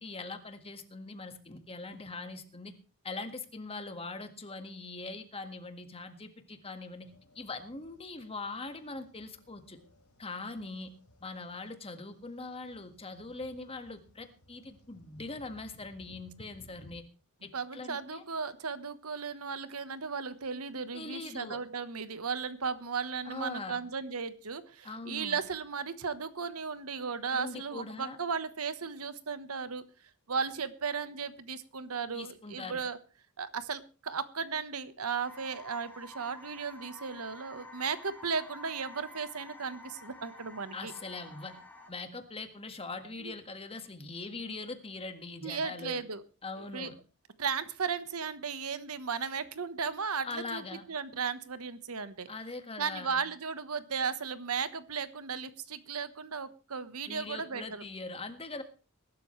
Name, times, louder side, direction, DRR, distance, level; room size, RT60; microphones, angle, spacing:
voice 1, 0.0-2.7 3.0-7.1 7.3-9.8 10.2-10.9 11.2-17.0 17.4-18.2 20.9-21.6 23.2-23.8 24.8-25.4 27.3-28.2 32.1-32.8 40.7-41.6 41.9-46.0 46.4-47.0 50.2-50.8 52.3-53.2 57.1-58.6, left 3 dB, 25° left, 7 dB, 1.8 m, -42 dB
sound 1, 7.0-17.0, equal, 80° left, 3.6 m, -60 dB
voice 2, 17.5-29.8 30.3-33.0 33.4-40.9 43.2-43.3 45.4-46.2 46.6-46.9 47.4-50.6 50.9-52.3 52.8-57.8, right 5 dB, 85° right, 13 dB, 1.2 m, -35 dB
sound 2, 35.2-41.9, left 1 dB, 10° left, 2.7 m, -50 dB
21.5 x 12.5 x 3.3 m, 0.34 s
head